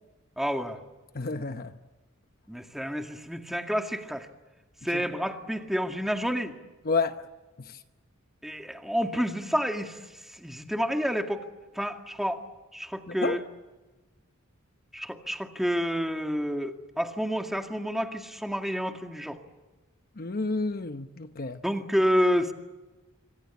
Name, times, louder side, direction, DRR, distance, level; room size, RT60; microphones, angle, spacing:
voice 1, 0.4-0.8 2.5-4.3 4.8-6.6 8.4-11.4 11.7-12.4 12.7-13.4 14.9-19.4 21.6-22.5, equal, ahead, 4 dB, 2.0 m, -29 dB
voice 2, 1.1-1.7 4.9-5.0 6.9-7.3 7.6-7.8 13.1-13.4 20.2-21.6, left 3 dB, 45° left, 9 dB, 0.9 m, -30 dB
26.0 x 25.5 x 8.3 m, 1.2 s
head